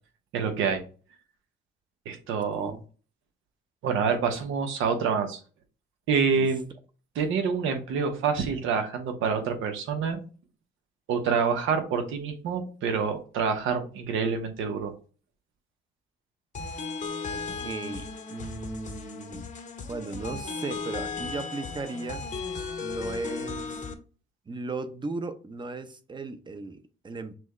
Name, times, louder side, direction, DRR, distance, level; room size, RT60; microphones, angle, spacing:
voice 1, 0.3-0.8 2.0-2.7 3.8-5.4 6.1-6.6 7.1-10.2 11.1-14.9, right 6 dB, 90° right, 1.0 m, -27 dB
sound 1, 16.5-23.9, left 4 dB, 40° left, 0.8 m, -36 dB
voice 2, 17.3-19.5 19.9-22.2 22.8-23.8 24.5-27.3, right 3 dB, 25° right, 0.6 m, -36 dB
6.0 x 2.3 x 3.1 m
cardioid pair, 90°, 20 cm